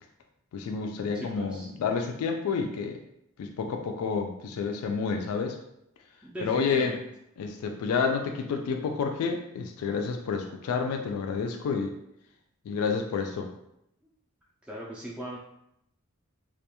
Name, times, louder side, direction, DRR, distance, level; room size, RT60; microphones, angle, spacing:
voice 1, 0.5-3.0 3.4-5.6 6.4-6.9 7.4-11.9 12.7-13.5, left 5 dB, 90° left, 5 dB, 0.3 m, -29 dB
voice 2, 1.1-1.7 6.2-7.0 14.6-15.4, right 1 dB, 5° right, -7 dB, 0.3 m, -38 dB
2.3 x 2.2 x 2.8 m, 0.79 s
head